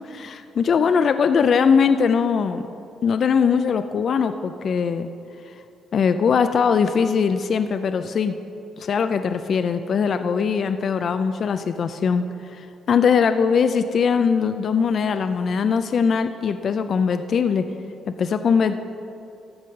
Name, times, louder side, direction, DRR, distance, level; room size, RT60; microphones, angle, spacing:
voice 1, 0.1-2.6 3.0-5.1 5.9-8.3 8.8-12.2 12.5-17.6 18.1-18.8, left 6 dB, 55° left, 9 dB, 0.4 m, -21 dB
14.0 x 5.5 x 5.2 m, 2.6 s
cardioid pair, 90°, 0 cm